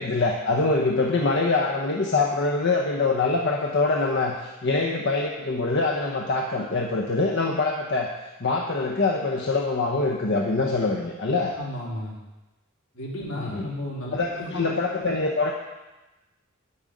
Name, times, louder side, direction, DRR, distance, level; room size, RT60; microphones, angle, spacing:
voice 1, 0.0-8.1 8.4-11.6 13.4-13.6 14.1-15.5, left 3 dB, 55° left, 0 dB, 0.9 m, -24 dB
voice 2, 11.6-12.2 12.9-14.7, equal, 80° left, -5 dB, 3.5 m, -33 dB
9.6 x 8.8 x 5.2 m, 1.1 s
head